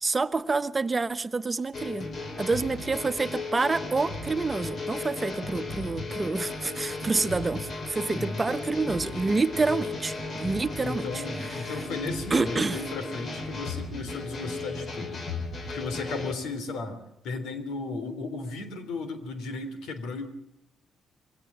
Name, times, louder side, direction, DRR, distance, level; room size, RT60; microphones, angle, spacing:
voice 1, 0.0-2.1 2.4-11.7 12.3-12.8, right 3 dB, 25° right, 1.2 m, -28 dB
sound 1, 1.7-16.3, left 3 dB, 50° left, 4.7 m, -35 dB
voice 2, 8.1-8.4 9.5-10.0 10.8-15.3 15.7-17.0 17.2-20.3, left 3 dB, 85° left, 3.4 m, -35 dB
22.5 x 17.0 x 8.8 m
cardioid pair, 80°, 0 cm